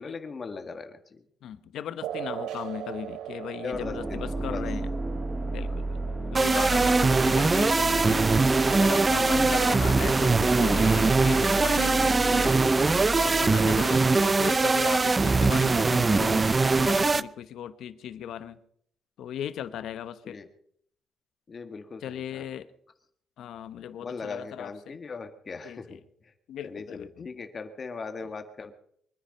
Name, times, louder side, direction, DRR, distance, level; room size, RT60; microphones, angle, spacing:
voice 1, 0.0-1.2 3.6-4.6 6.3-6.4 20.2-20.5 21.5-22.5 24.0-26.3 26.6-28.7, left 4 dB, 40° left, 7 dB, 1.8 m, -39 dB
voice 2, 1.4-4.9 5.5-8.3 8.7-12.8 13.1-18.6 19.2-20.4 22.0-22.7 23.4-25.0 25.6-25.8 26.5-27.1, left 10 dB, 75° left, 13 dB, 1.0 m, -37 dB
sound 1, 2.0-9.0, right 11 dB, 85° right, 1.0 m, -41 dB
sound 2, 3.7-14.5, right 2 dB, 10° right, 1.0 m, -32 dB
sound 3, 6.3-17.2, right 3 dB, 25° right, 0.5 m, -22 dB
23.5 x 10.0 x 5.4 m, 0.67 s
cardioid pair, 90°, 0 cm